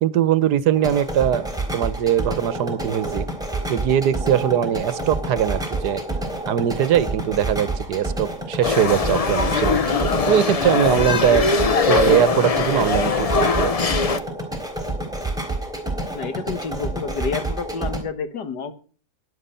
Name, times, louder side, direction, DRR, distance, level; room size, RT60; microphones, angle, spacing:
voice 1, 0.0-3.3 3.7-6.0 6.4-11.5 11.9-13.7, right 10 dB, 80° right, 16 dB, 1.5 m, -21 dB
sound 1, 0.7-18.0, right 2 dB, ahead, 3.7 m, -29 dB
sound 2, 8.6-14.2, left 4 dB, 60° left, 0.4 m, -21 dB
voice 2, 16.1-18.7, left 5 dB, 85° left, 10 dB, 2.0 m, -29 dB
16.5 x 10.5 x 5.7 m, 0.40 s
omnidirectional pair, 1.7 m